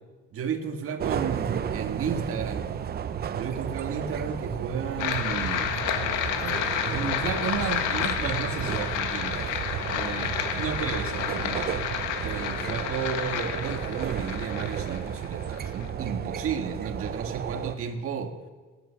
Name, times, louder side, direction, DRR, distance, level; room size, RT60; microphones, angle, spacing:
voice 1, 0.3-1.4 1.7-2.7 3.3-5.7 6.4-9.4 9.9-11.7 12.2-18.3, right 7 dB, 50° right, 6 dB, 1.8 m, -33 dB
sound 1, 1.0-17.8, right 8 dB, 35° right, 0.7 m, -33 dB
sound 2, 5.0-15.9, left 9 dB, 90° left, 1.7 m, -30 dB
sound 3, 5.3-6.6 7.4-7.6 7.9-9.1 9.8-11.4 11.9-13.3 13.7-13.8 14.1-15.3, right 6 dB, 75° right, 1.7 m, -44 dB
19.0 x 11.0 x 5.8 m, 1.4 s
cardioid pair, 150°, 29 cm